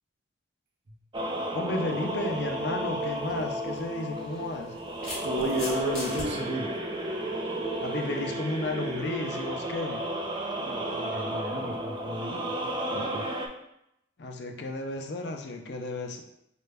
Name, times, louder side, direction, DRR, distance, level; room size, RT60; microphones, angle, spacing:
sound 1, 1.1-13.5, right 1 dB, 25° right, 0.4 m, -33 dB
voice 1, 1.5-4.7 7.8-10.0 14.2-16.2, left 2 dB, 65° left, 4 dB, 0.5 m, -33 dB
sound 2, 3.1-3.2 4.3-6.3, left 1 dB, 5° left, 1.2 m, -38 dB
voice 2, 5.0-6.7 10.6-13.2, right 1 dB, 60° right, 2 dB, 0.7 m, -33 dB
5.1 x 2.2 x 3.3 m, 0.81 s
head